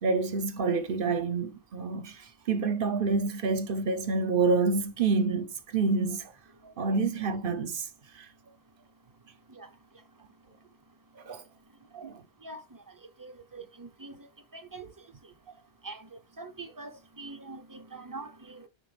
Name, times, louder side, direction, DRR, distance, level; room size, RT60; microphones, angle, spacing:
voice 1, 0.0-6.3 6.6-7.9 8.2-8.3 11.3-11.4 11.9-12.2, right 4 dB, 60° right, 0.9 m, -28 dB
voice 2, 13.2-14.3 14.5-14.8 15.8-16.1 16.4-18.7, right 3 dB, 25° right, 0.6 m, -43 dB
9.2 x 3.5 x 3.3 m
omnidirectional pair, 1.1 m